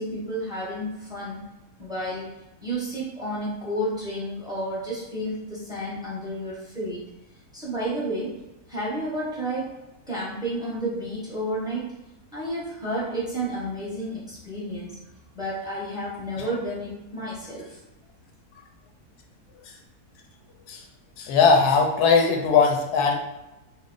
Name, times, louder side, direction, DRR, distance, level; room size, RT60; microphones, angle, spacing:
voice 1, 0.0-1.4 1.8-2.3 2.6-7.0 7.5-8.4 8.7-9.8 10.1-11.9 12.3-15.0 15.3-17.8, right 1 dB, 5° right, -7 dB, 0.7 m, -31 dB
voice 2, 21.2-23.1, left 5 dB, 85° left, 1 dB, 1.1 m, -19 dB
3.1 x 2.1 x 3.7 m, 0.98 s
omnidirectional pair, 1.7 m